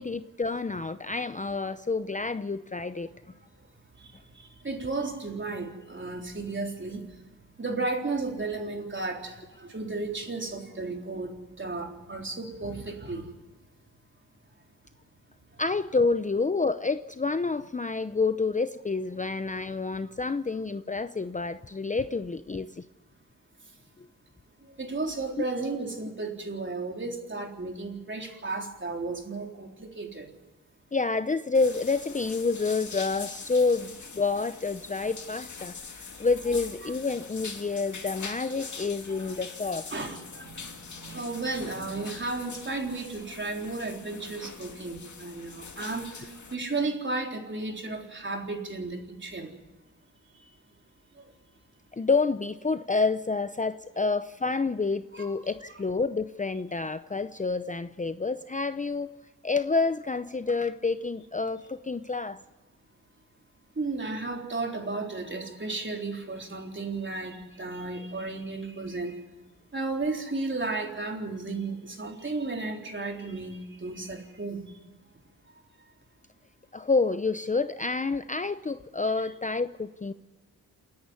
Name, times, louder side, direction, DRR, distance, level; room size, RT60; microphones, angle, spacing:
voice 1, 0.0-3.1 15.6-22.8 30.9-35.7 36.2-39.9 51.9-59.1 59.4-62.4 76.7-80.1, left 4 dB, 25° left, 12 dB, 0.6 m, -28 dB
voice 2, 4.6-7.0 7.6-13.3 24.8-30.3 36.8-36.9 39.1-39.4 39.9-49.5 55.1-55.4 63.8-69.2 69.7-74.7, right 3 dB, 35° right, 2 dB, 3.9 m, -34 dB
sound 1, 31.5-46.5, left 5 dB, 60° left, 2.4 m, -43 dB
28.0 x 10.5 x 9.6 m, 1.2 s
cardioid pair, 75°, 33 cm